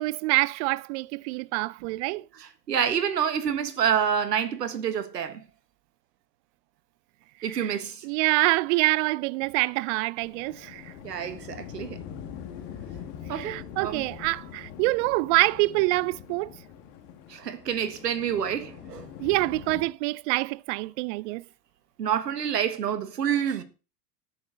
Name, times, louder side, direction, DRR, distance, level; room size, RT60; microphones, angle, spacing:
voice 1, 0.0-2.2 7.5-10.9 13.3-16.5 19.2-21.4, right 22 dB, 50° right, 0.5 m, -26 dB
voice 2, 2.4-5.4 7.4-8.0 11.0-12.0 13.3-14.0 17.3-19.1 22.0-23.6, right 8 dB, 80° right, 1.6 m, -28 dB
sound 1, 10.2-19.9, left 8 dB, 55° left, 2.0 m, -43 dB
12.5 x 8.8 x 3.9 m
hypercardioid pair, 85°, 47 cm